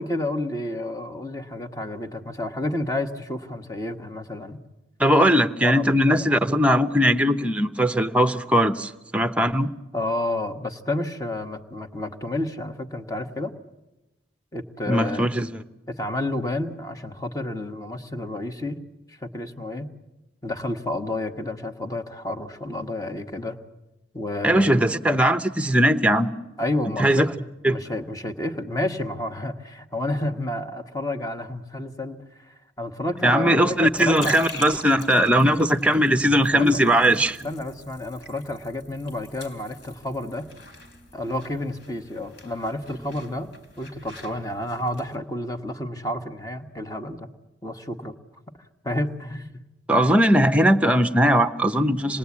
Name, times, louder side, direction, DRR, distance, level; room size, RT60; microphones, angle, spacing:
voice 1, 0.0-4.6 5.6-6.3 9.9-13.5 14.5-15.3 15.9-18.8 19.1-19.9 20.4-23.6 24.1-24.8 26.6-27.3 27.7-34.4 36.5-36.8 37.4-40.5 41.1-43.5 43.8-47.3 47.6-48.2 48.8-49.6, left 1 dB, 20° left, 6 dB, 1.2 m, -30 dB
voice 2, 5.0-9.7 14.9-15.6 24.4-26.3 27.0-27.3 27.6-27.8 33.2-37.5 49.9-52.2, equal, 5° right, 9 dB, 0.8 m, -19 dB
sound 1, 33.6-45.2, left 3 dB, 65° left, 4.3 m, -43 dB
27.0 x 20.5 x 8.5 m, 1.0 s
head